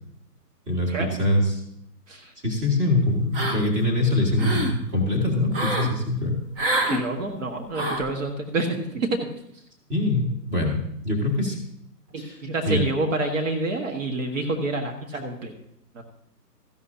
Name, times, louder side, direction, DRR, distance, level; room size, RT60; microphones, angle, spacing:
voice 1, 0.7-1.6 2.4-4.6 4.9-6.4 9.9-10.8 11.0-11.6 12.2-12.4 12.7-12.8, left 1 dB, 15° right, -1 dB, 2.2 m, -23 dB
sound 1, 3.3-3.9 4.2-4.8 5.5-5.9 6.6-7.0 7.7-8.1, right 1 dB, 35° right, 1.3 m, -26 dB
voice 2, 6.9-9.3 12.1-15.5 15.9-16.0, right 2 dB, 50° right, 3 dB, 1.7 m, -28 dB
14.5 x 11.5 x 2.8 m, 0.73 s
hypercardioid pair, 145°, 48 cm